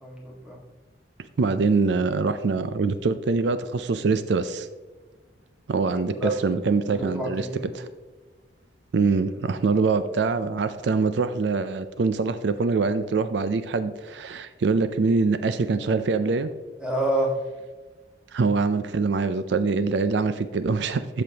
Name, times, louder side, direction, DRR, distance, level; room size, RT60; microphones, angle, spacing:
voice 1, 0.0-0.6 6.1-6.3 6.9-7.7 16.8-17.3, right 1 dB, 5° right, -3 dB, 1.7 m, -28 dB
voice 2, 1.4-4.7 5.7-7.5 7.7-7.9 8.9-16.5 18.3-21.2, right 4 dB, 70° right, 11 dB, 0.4 m, -24 dB
14.0 x 5.2 x 2.8 m, 1.3 s
head